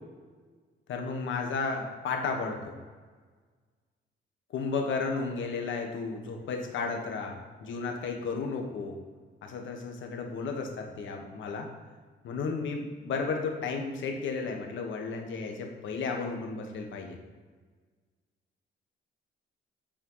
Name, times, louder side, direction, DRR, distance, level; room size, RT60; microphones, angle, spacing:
voice 1, 0.9-2.8 4.5-9.0 9.4-11.7 12.2-17.2, left 4 dB, 75° left, 3 dB, 1.4 m, -33 dB
9.1 x 4.3 x 5.5 m, 1.5 s
cardioid pair, 90°, 20 cm